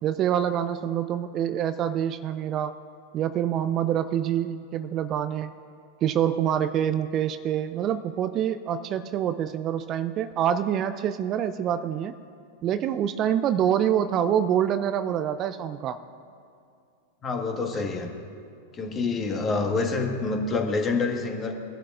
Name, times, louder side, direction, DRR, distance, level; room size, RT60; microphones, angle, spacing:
voice 1, 0.0-2.7 3.1-5.5 6.0-12.1 12.6-16.0, right 9 dB, 35° right, 11 dB, 0.4 m, -26 dB
voice 2, 17.2-18.1 18.7-21.5, left 3 dB, 25° left, 2 dB, 1.6 m, -27 dB
21.5 x 11.5 x 2.5 m, 2.4 s
figure-of-eight pair, 95°, 0 cm